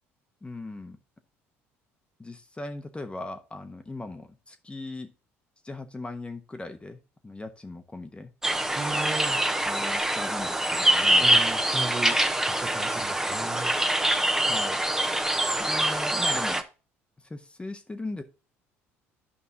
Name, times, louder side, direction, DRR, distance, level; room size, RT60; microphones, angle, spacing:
voice 1, 0.4-1.0 2.2-5.1 5.6-7.0 7.2-8.3 9.6-11.3 14.5-14.8 15.6-16.6 17.2-18.2, left 2 dB, 15° left, 6 dB, 1.1 m, -38 dB
sound 1, 8.4-16.6, right 1 dB, 5° right, 0.9 m, -24 dB
voice 2, 8.8-9.5 11.2-12.2 12.5-13.7, right 3 dB, 25° right, 6 dB, 1.2 m, -36 dB
11.5 x 5.3 x 2.8 m, 0.32 s
hypercardioid pair, 60°, 7 cm